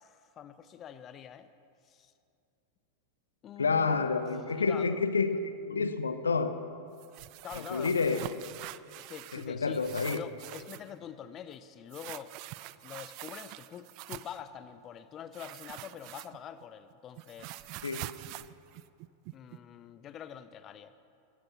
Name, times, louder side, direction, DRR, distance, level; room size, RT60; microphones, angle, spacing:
voice 1, 0.0-1.5 1.8-2.1 3.4-4.1 4.5-5.0 7.4-8.1 9.0-12.3 12.8-17.6 19.3-20.9, left 9 dB, 30° left, 13 dB, 0.6 m, -45 dB
voice 2, 3.6-6.6 7.6-8.2 9.3-10.2 17.8-18.0, left 4 dB, 75° left, 11 dB, 0.8 m, -29 dB
sound 1, 7.0-9.5 9.7-10.9 11.9-14.4 15.3-16.6 16.9-19.6, right 17 dB, 45° right, 0.4 m, -45 dB
15.5 x 12.5 x 5.9 m, 2.5 s
figure-of-eight pair, 90°, 0 cm